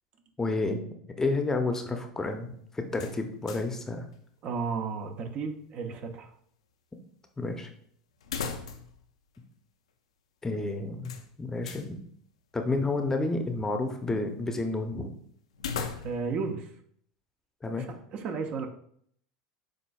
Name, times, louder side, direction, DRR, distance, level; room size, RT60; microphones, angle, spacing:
voice 1, 0.4-0.8 1.2-4.1 7.4-7.7 10.4-12.0 12.5-15.1 17.6-17.9, left 2 dB, 15° left, 5 dB, 0.6 m, -30 dB
sound 1, 2.9-3.8 4.1-4.2 8.2-9.0 9.3-9.4 11.0-11.9 15.5-16.4, left 6 dB, 85° left, 0.5 m, -37 dB
voice 2, 4.4-6.3 16.0-16.7 17.8-18.7, right 5 dB, 45° right, 6 dB, 0.6 m, -33 dB
7.3 x 2.5 x 2.3 m, 0.64 s
hypercardioid pair, 90°, 3 cm